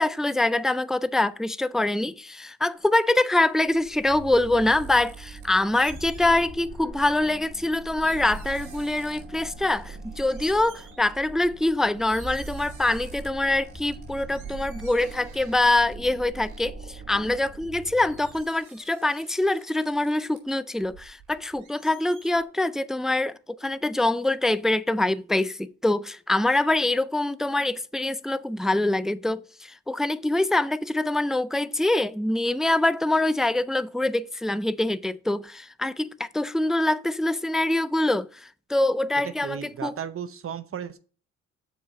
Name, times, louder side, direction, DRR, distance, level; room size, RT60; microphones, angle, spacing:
voice 1, 0.0-40.0, left 2 dB, ahead, 0.3 m, -24 dB
sound 1, 2.8-6.7 7.2-9.4 9.7-11.0 11.7-11.8 12.0-13.3 13.6-17.7 18.0-20.4 20.8-22.4, right 6 dB, 75° right, 2.5 m, -53 dB
sound 2, 3.9-18.4, right 3 dB, 30° right, 1.3 m, -41 dB
voice 2, 39.4-41.0, right 8 dB, 45° right, 0.7 m, -34 dB
7.0 x 4.7 x 5.1 m
cardioid pair, 90°, 30 cm